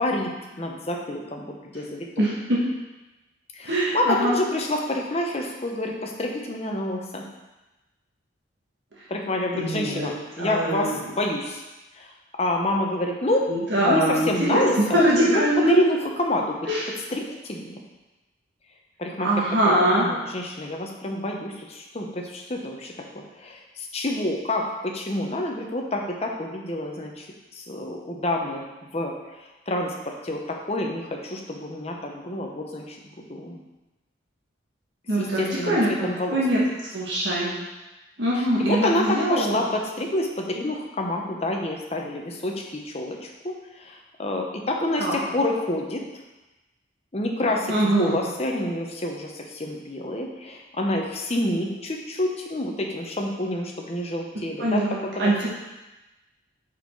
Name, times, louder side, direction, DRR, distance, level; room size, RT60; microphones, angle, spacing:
voice 1, 0.0-2.2 3.5-7.2 9.1-11.6 11.9-12.1 12.4-13.5 13.8-16.6 17.1-17.8 19.0-27.3 27.5-28.7 28.9-30.4 30.7-33.0 33.3-33.6 35.2-36.7 38.3-46.0 47.1-54.9 55.2-55.5, left 1 dB, 30° left, 1 dB, 0.8 m, -28 dB
voice 2, 3.6-4.4 9.5-10.1 10.4-11.0 13.5-14.6 14.9-15.8 16.7-16.9 19.2-20.0 35.1-36.6 36.9-37.5 38.2-39.6 45.0-45.2 47.7-48.1 54.6-55.5, right 1 dB, 60° right, -6 dB, 1.5 m, -23 dB
5.6 x 4.8 x 4.5 m, 1.1 s
head